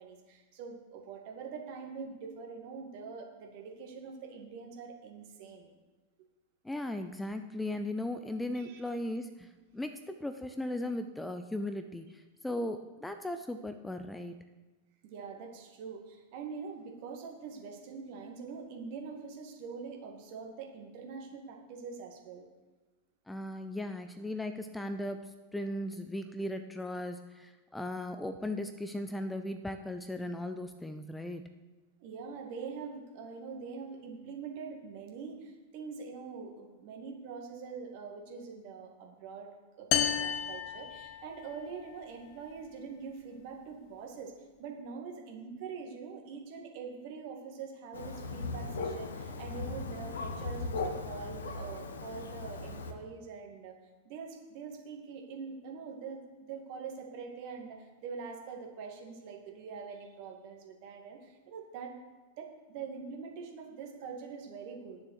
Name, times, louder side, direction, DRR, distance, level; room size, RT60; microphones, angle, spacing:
voice 1, 0.0-5.7 8.5-8.8 15.0-22.5 32.0-39.5 39.8-44.3 44.6-53.7 54.0-61.9 62.4-65.0, right 5 dB, 45° right, 2 dB, 2.1 m, -44 dB
voice 2, 6.6-14.4 23.3-31.4, left 1 dB, 5° left, 8 dB, 0.5 m, -37 dB
sound 1, 39.9-41.6, left 9 dB, 40° left, 0.8 m, -32 dB
Thunder, 47.9-52.9, left 3 dB, 65° left, 1.0 m, -38 dB
10.5 x 6.9 x 6.7 m, 1.2 s
figure-of-eight pair, 90°, 0 cm